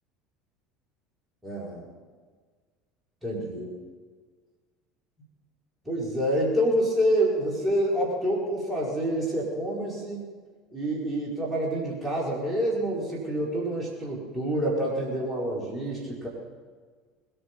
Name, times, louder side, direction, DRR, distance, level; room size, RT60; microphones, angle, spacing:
voice 1, 1.4-1.8 3.2-3.7 5.8-10.2 10.7-16.3, right 1 dB, 15° right, -5 dB, 4.9 m, -27 dB
20.5 x 10.0 x 5.5 m, 1.5 s
figure-of-eight pair, 65°, 0 cm